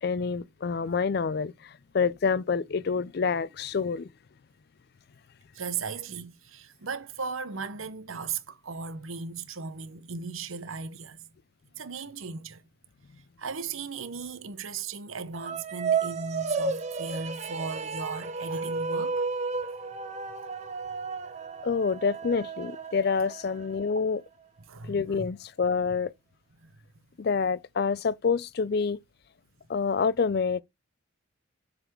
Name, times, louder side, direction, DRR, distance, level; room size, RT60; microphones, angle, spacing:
voice 1, 0.0-4.1 21.6-24.2 24.8-26.1 27.2-29.0 29.7-30.6, left 5 dB, 50° left, 0.4 m, -27 dB
voice 2, 5.5-11.2 11.8-12.6 13.4-19.2 24.7-25.3 26.6-26.7, right 5 dB, 75° right, 0.9 m, -37 dB
sound 1, 15.3-23.8, right 4 dB, 35° right, 0.9 m, -32 dB
7.9 x 4.0 x 4.4 m
head